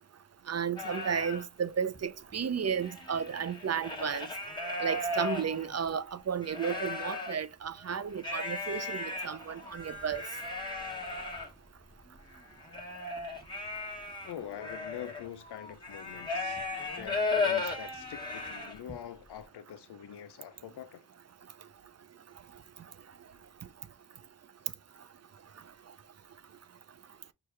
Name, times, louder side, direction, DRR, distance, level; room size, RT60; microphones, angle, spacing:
voice 1, 0.5-4.3 4.8-10.2, right 7 dB, 40° right, 0.4 m, -33 dB
sound 1, 0.8-1.4 1.9-2.0 2.3-5.9 6.4-7.4 8.2-19.0, left 3 dB, 10° left, 1.2 m, -36 dB
voice 2, 14.2-16.6 17.0-21.1, left 10 dB, 80° left, 0.5 m, -44 dB
4.7 x 2.4 x 3.1 m
cardioid pair, 40°, 40 cm